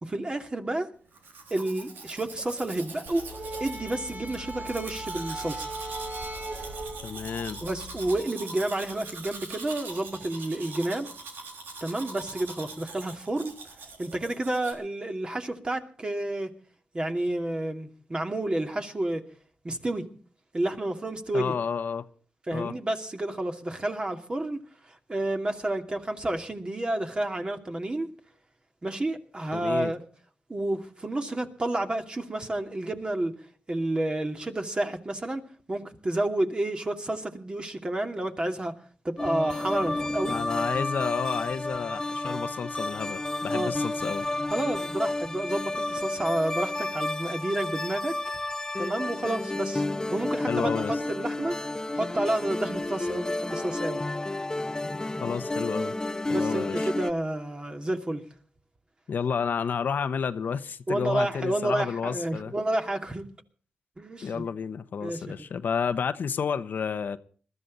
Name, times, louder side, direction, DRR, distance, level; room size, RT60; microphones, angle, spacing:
voice 1, 0.0-0.9 1.5-3.3 3.6-5.7 7.6-11.1 11.8-13.5 14.0-16.5 16.9-19.2 19.6-20.1 20.5-21.5 22.5-24.6 24.9-28.1 28.8-30.0 30.5-33.3 33.7-35.4 35.7-38.7 39.0-40.4 43.5-43.7 44.5-48.2 48.8-49.8 50.1-51.6 51.9-54.0 56.3-58.2 60.9-63.3 64.0-64.4 65.0-65.5, right 1 dB, 30° right, 4 dB, 2.6 m, -30 dB
Domestic sounds home sounds, 1.1-14.7, right 4 dB, 85° right, 3.7 m, -43 dB
sound 1, 3.1-8.1, right 1 dB, 55° right, 4.0 m, -38 dB
voice 2, 7.0-7.6 21.3-22.1 22.5-22.7 29.5-29.9 40.3-44.3 50.5-51.0 55.2-55.9 56.3-56.9 59.1-62.5 64.2-67.2, left 6 dB, 65° left, 11 dB, 1.0 m, -31 dB
sound 2, 39.2-57.1, left 2 dB, 20° left, 0.7 m, -31 dB
21.0 x 13.5 x 4.1 m, 0.42 s
cardioid pair, 60°, 3 cm